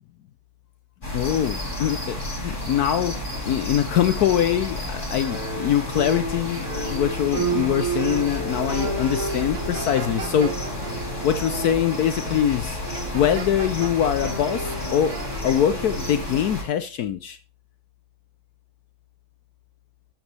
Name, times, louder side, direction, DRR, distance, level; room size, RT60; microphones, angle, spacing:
sound 1, 1.0-16.6, left 1 dB, 35° left, 5.3 m, -31 dB
voice 1, 1.1-3.2 3.5-10.5 10.9-11.0 11.2-12.8 13.1-15.1 15.4-17.4, left 10 dB, 80° left, 12 dB, 0.8 m, -23 dB
sound 2, 5.2-16.4, right 3 dB, 80° right, 4.4 m, -32 dB
sound 3, 9.5-10.9 12.9-14.3 14.6-15.4, right 6 dB, 65° right, 1.7 m, -38 dB
10.5 x 9.0 x 3.2 m, 0.35 s
omnidirectional pair, 2.3 m